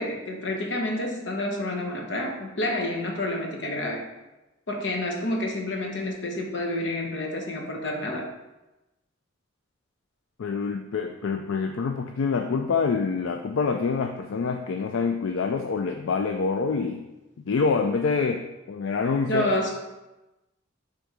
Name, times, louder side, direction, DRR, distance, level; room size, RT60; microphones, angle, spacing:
voice 1, 0.0-4.0 4.7-8.3 19.3-19.8, left 1 dB, 65° left, 1 dB, 1.1 m, -29 dB
voice 2, 10.4-17.0 17.5-19.5, left 5 dB, 80° left, 5 dB, 0.4 m, -26 dB
6.4 x 3.5 x 4.8 m, 1.0 s
head